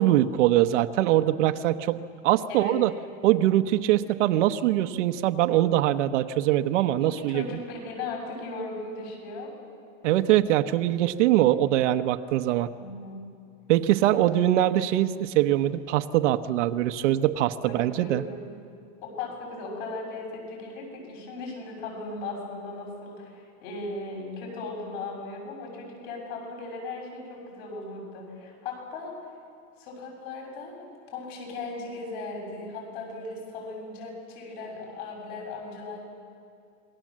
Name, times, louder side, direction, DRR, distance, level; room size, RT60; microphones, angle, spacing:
voice 1, 0.0-2.9 3.2-7.4 10.0-12.7 13.7-18.2, right 13 dB, 75° right, 7 dB, 1.0 m, -23 dB
voice 2, 2.5-2.8 7.0-9.5 12.8-13.2 17.6-18.5 19.0-29.1 29.8-30.8 31.1-36.0, left 3 dB, 55° left, 0 dB, 7.7 m, -37 dB
27.0 x 21.5 x 7.5 m, 2.3 s
supercardioid pair, 175°, 36 cm